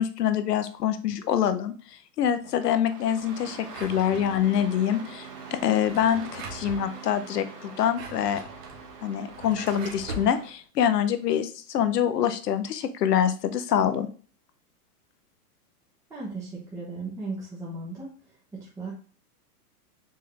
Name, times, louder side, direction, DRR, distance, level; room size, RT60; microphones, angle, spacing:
voice 1, 0.0-1.7 2.2-8.4 9.0-14.1, left 9 dB, 90° left, 10 dB, 0.8 m, -25 dB
Engine starting, 2.4-10.5, right 5 dB, 80° right, 1.8 m, -44 dB
Drawer open or close, 3.7-4.7 5.7-6.8 7.7-10.3, right 3 dB, 45° right, 1.2 m, -41 dB
voice 2, 16.1-18.1 18.5-18.9, right 3 dB, 5° right, -7 dB, 0.8 m, -36 dB
4.5 x 3.6 x 3.2 m, 0.40 s
hypercardioid pair, 145°, 46 cm